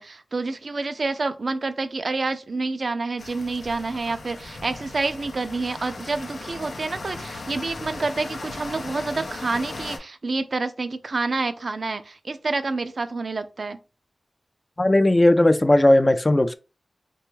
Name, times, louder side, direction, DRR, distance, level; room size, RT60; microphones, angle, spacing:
voice 1, 0.0-13.8, right 3 dB, 60° right, 0.3 m, -28 dB
sound 1, 3.2-10.0, left 2 dB, 80° left, 0.5 m, -37 dB
voice 2, 14.8-16.6, left 1 dB, 30° left, 0.3 m, -17 dB
3.3 x 2.2 x 3.0 m
cardioid pair, 55°, 0 cm